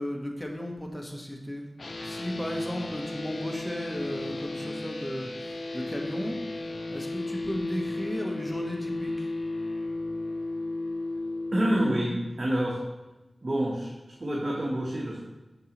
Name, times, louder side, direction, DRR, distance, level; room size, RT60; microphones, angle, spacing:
voice 1, 0.0-1.7 2.0-9.3, equal, 10° left, 1 dB, 1.2 m, -35 dB
sound 1, 1.8-11.8, left 2 dB, 70° left, 0.6 m, -34 dB
voice 2, 11.5-12.8 13.4-13.9 14.2-15.2, right 1 dB, 55° right, -3 dB, 0.9 m, -27 dB
6.6 x 5.5 x 2.9 m, 1.0 s
cardioid pair, 40°, 0 cm